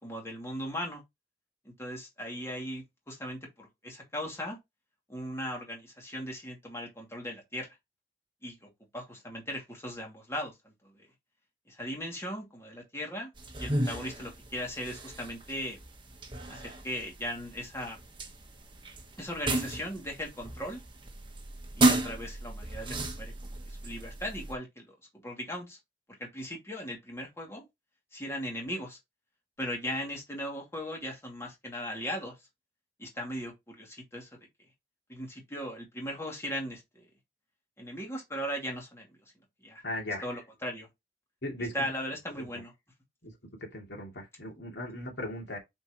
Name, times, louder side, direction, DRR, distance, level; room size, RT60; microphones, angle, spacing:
voice 1, 0.0-1.0 1.6-4.6 5.1-7.7 8.4-11.1 11.7-13.3 13.6-15.8 16.5-18.0 19.2-20.8 21.8-24.9 25.2-25.8 26.2-27.7 28.1-29.0 29.6-32.4 33.0-34.3 35.1-37.1 37.8-39.1 39.6-39.8 40.2-40.9 41.7-42.7, equal, 15° left, 2.4 m, -38 dB
sound 1, 13.4-24.5, right 2 dB, 30° right, 1.3 m, -33 dB
voice 2, 39.8-40.3 41.4-41.8 42.4-42.5 43.2-43.3 43.6-45.6, left 1 dB, 80° left, 2.6 m, -37 dB
7.8 x 4.5 x 3.0 m
head